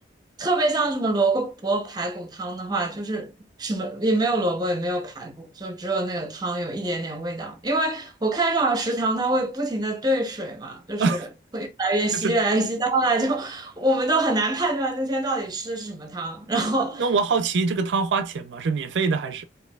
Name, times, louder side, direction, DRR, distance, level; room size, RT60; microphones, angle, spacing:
voice 1, 0.4-3.3 3.6-11.3 11.5-17.1, right 2 dB, 20° right, 0.7 m, -25 dB
voice 2, 17.0-19.4, right 4 dB, 70° right, 0.4 m, -24 dB
4.4 x 2.6 x 2.3 m
head